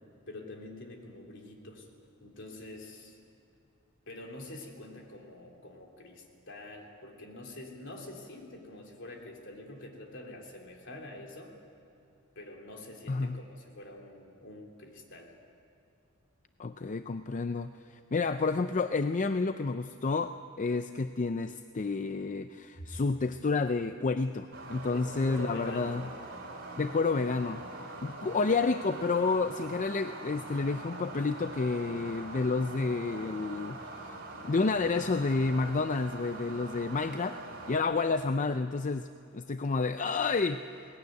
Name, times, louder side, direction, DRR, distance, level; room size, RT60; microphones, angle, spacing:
voice 1, 0.3-1.9 2.2-3.2 4.1-11.5 12.3-15.3 22.8-22.9 24.8-26.1, left 1 dB, 65° left, 1 dB, 3.4 m, -46 dB
voice 2, 13.1-13.4 16.6-26.0 26.8-27.6 28.0-34.2 34.4-37.4 37.7-40.6, left 4 dB, 40° left, 10 dB, 0.5 m, -30 dB
sound 1, 24.5-37.8, right 2 dB, 50° right, 4.1 m, -43 dB
21.0 x 19.0 x 9.5 m, 2.5 s
head